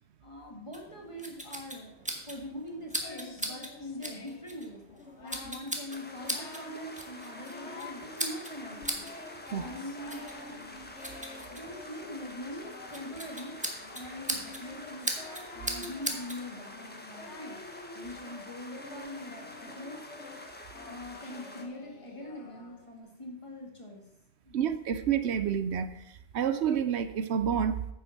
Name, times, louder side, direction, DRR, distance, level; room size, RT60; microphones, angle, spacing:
voice 1, 0.2-1.9 2.3-4.8 5.2-10.6 11.5-15.1 15.5-17.6 17.9-20.0 20.8-24.0 24.5-24.6, left 1 dB, 25° left, 0 dB, 2.1 m, -43 dB
sound 1, 0.7-16.4, equal, 5° right, 1.2 m, -40 dB
Singing, 3.0-4.5 4.9-5.7 6.0-6.9 7.2-8.1 8.5-23.0, left 3 dB, 90° left, 1.5 m, -48 dB
sound 2, 5.9-21.6, left 1 dB, 10° left, 1.0 m, -47 dB
voice 2, 24.5-27.8, right 8 dB, 75° right, 11 dB, 0.9 m, -29 dB
9.6 x 7.1 x 5.9 m, 0.84 s
omnidirectional pair, 1.1 m